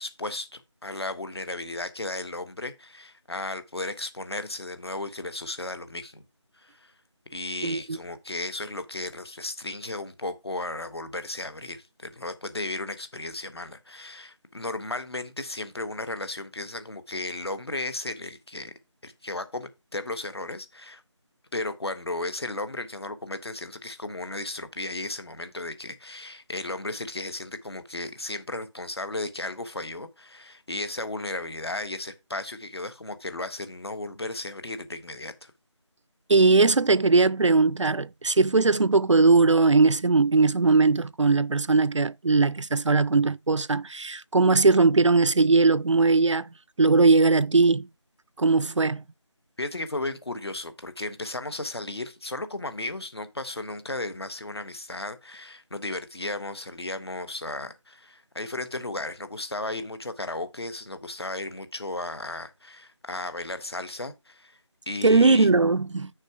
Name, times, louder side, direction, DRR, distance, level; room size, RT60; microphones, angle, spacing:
voice 1, 0.0-6.2 6.6-6.9 7.3-18.7 19.0-21.0 21.5-35.5 49.6-64.6 64.9-65.5, left 2 dB, 55° left, 1.3 m, -35 dB
voice 2, 7.6-8.0 36.3-46.5 46.8-47.9 48.4-49.0 65.0-66.1, right 3 dB, 75° right, 0.5 m, -20 dB
6.5 x 4.7 x 6.0 m
figure-of-eight pair, 175°, 16 cm